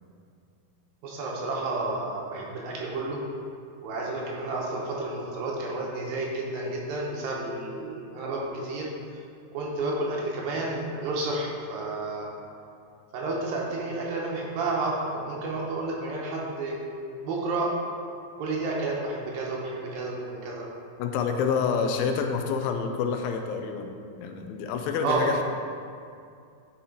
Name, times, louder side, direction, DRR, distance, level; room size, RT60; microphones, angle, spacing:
voice 1, 1.0-3.2 3.8-8.9 9.1-9.2 9.5-12.3 13.1-16.8 17.2-17.7 18.4-20.7 25.0-25.4, right 2 dB, 85° right, -2 dB, 2.8 m, -31 dB
voice 2, 21.0-25.4, left 6 dB, 85° left, 5 dB, 2.4 m, -28 dB
10.5 x 4.2 x 3.9 m, 2.4 s
omnidirectional pair, 4.2 m